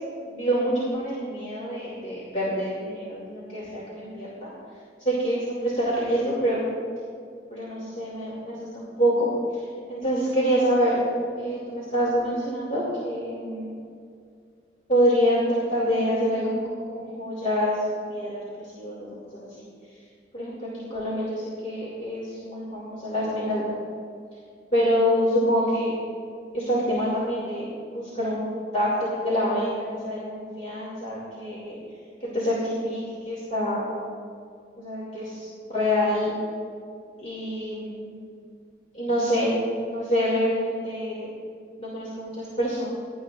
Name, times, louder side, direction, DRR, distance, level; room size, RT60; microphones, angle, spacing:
voice 1, 0.2-4.5 5.0-6.6 7.5-11.0 11.4-13.8 14.9-17.8 18.1-19.6 20.3-23.7 24.7-25.9 26.5-28.9 29.2-31.8 32.2-34.0 34.8-36.3 37.2-38.2 38.9-39.5 39.9-41.3 41.8-42.9, equal, 40° left, -7 dB, 2.7 m, -26 dB
22.5 x 12.0 x 2.5 m, 2.3 s
head